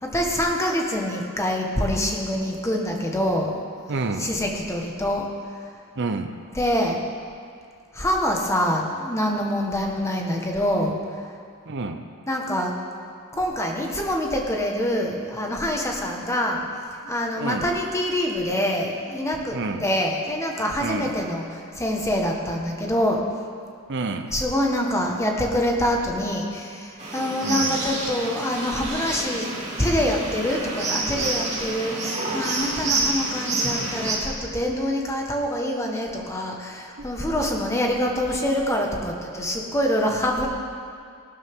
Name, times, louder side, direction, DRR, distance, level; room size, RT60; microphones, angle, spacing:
voice 1, 0.0-3.6 4.2-5.3 6.5-7.0 7.9-10.9 12.3-12.7 13.3-16.6 17.1-23.2 24.3-40.5, equal, 15° left, 0 dB, 1.5 m, -25 dB
voice 2, 3.9-4.3 6.0-6.3 11.7-12.1 17.4-17.7 19.5-19.9 20.8-21.1 23.9-24.3 27.4-27.8 37.0-37.1, right 3 dB, 55° right, 6 dB, 0.7 m, -29 dB
sound 1, 27.0-34.1, right 2 dB, 30° right, 2.7 m, -28 dB
19.0 x 12.0 x 3.7 m, 2.3 s
head